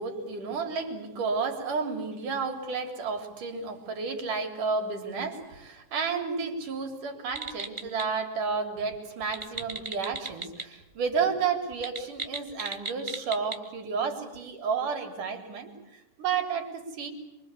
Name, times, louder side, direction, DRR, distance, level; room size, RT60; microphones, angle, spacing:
voice 1, 0.0-17.1, right 5 dB, 60° right, 3 dB, 4.9 m, -31 dB
sound 1, 7.3-8.0 9.2-10.6 10.9-11.0 11.7-13.6, right 2 dB, 45° right, 0.4 m, -36 dB
27.5 x 24.5 x 8.3 m, 0.97 s
omnidirectional pair, 4.2 m